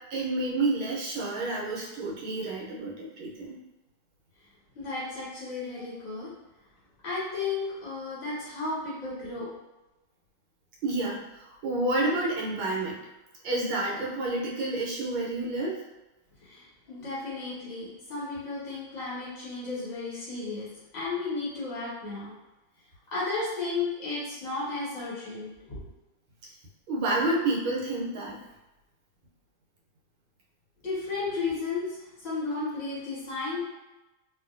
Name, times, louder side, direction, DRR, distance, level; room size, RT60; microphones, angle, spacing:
voice 1, 0.1-3.6 5.8-5.9 10.8-13.0 13.4-15.8 26.9-28.4, right 2 dB, 80° right, -4 dB, 1.6 m, -29 dB
voice 2, 4.7-6.3 7.0-9.5 16.4-20.7 20.9-22.3 23.1-25.8 30.8-33.6, left 3 dB, 35° left, -10 dB, 1.2 m, -33 dB
3.1 x 2.7 x 2.5 m, 1.0 s
omnidirectional pair, 2.2 m